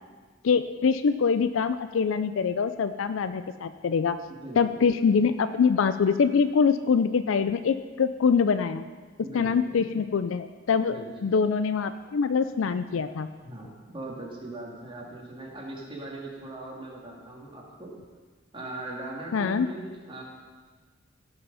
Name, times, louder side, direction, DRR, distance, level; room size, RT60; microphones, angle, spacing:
voice 1, 0.4-4.2 4.6-8.8 9.3-11.0 11.2-13.3 19.3-19.7, left 5 dB, 80° left, 11 dB, 0.4 m, -24 dB
voice 2, 4.3-4.9 9.2-9.8 10.9-11.1 13.4-17.9 18.5-20.2, right 2 dB, 25° right, -3 dB, 2.5 m, -40 dB
16.5 x 6.9 x 5.6 m, 1.4 s
head